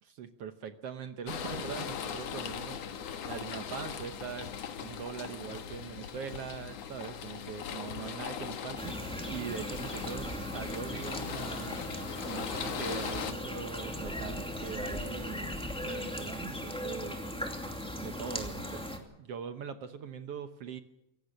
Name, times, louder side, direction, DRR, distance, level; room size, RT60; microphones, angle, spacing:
voice 1, 0.0-8.9 9.3-11.8 12.2-17.2 17.9-18.9 19.2-20.8, right 7 dB, 65° right, 9 dB, 1.6 m, -42 dB
sound 1, 1.3-13.3, left 8 dB, 60° left, 2.3 m, -40 dB
sound 2, 8.8-19.0, equal, ahead, 1.9 m, -38 dB
25.0 x 17.5 x 6.7 m, 0.85 s
omnidirectional pair, 3.6 m